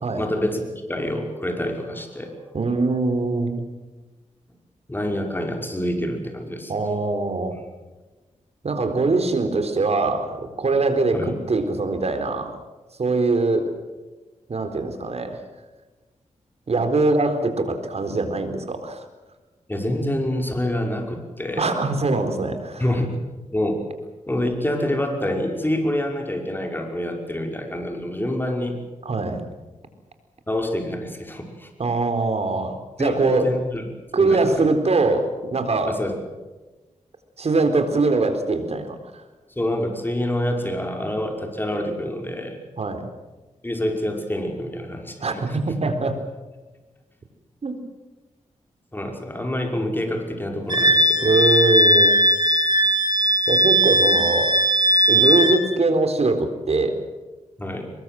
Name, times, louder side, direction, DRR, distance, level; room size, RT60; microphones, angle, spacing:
voice 1, 0.2-2.3 4.9-6.7 11.1-11.3 19.7-21.7 22.8-23.1 23.5-23.8 24.3-28.8 30.5-31.7 33.0-33.8 34.2-34.7 35.9-36.1 39.6-42.6 43.6-45.6 48.9-51.3 57.6-57.8, left 1 dB, 15° left, 3 dB, 5.6 m, -27 dB
voice 2, 2.5-3.6 6.7-7.6 8.6-12.6 13.0-13.7 14.5-15.4 16.7-19.1 21.6-22.8 29.0-29.4 31.8-33.5 34.1-36.0 37.4-39.0 42.8-43.1 45.2-46.2 47.6-47.8 51.2-52.1 53.5-54.5 55.1-57.0, right 3 dB, 55° right, 7 dB, 4.1 m, -22 dB
Wind instrument woodwind instrument, 50.7-55.6, equal, 35° right, 4.3 m, -18 dB
23.5 x 21.5 x 7.8 m, 1.2 s
cardioid pair, 75°, 13 cm